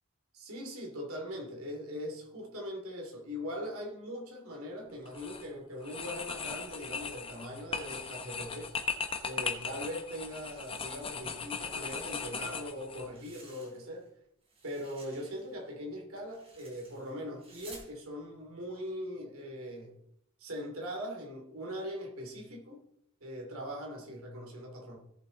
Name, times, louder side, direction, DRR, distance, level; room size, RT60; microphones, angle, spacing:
voice 1, 0.3-8.7 9.2-14.1 14.6-20.0 20.4-22.8 23.2-25.0, equal, 70° right, 0 dB, 3.0 m, -41 dB
sound 1, 5.0-5.4 5.8-13.1, left 5 dB, 25° left, 1.2 m, -38 dB
sound 2, 8.3-10.0 10.3-11.3 11.6-14.1 14.4-17.9, right 3 dB, 25° right, 3.6 m, -57 dB
17.0 x 7.6 x 4.1 m, 0.76 s
head